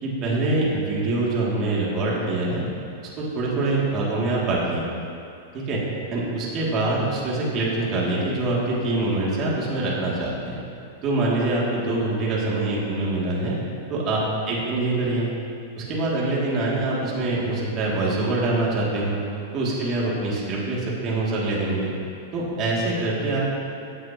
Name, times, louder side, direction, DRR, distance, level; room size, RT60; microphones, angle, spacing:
voice 1, 0.0-2.6 3.2-4.8 5.5-5.8 6.1-10.6 11.0-13.6 13.9-15.3 15.8-19.2 19.5-21.9 22.3-23.4, right 2 dB, 30° right, -5 dB, 2.5 m, -24 dB
16.0 x 9.7 x 3.0 m, 2.5 s
supercardioid pair, 150°, 0 cm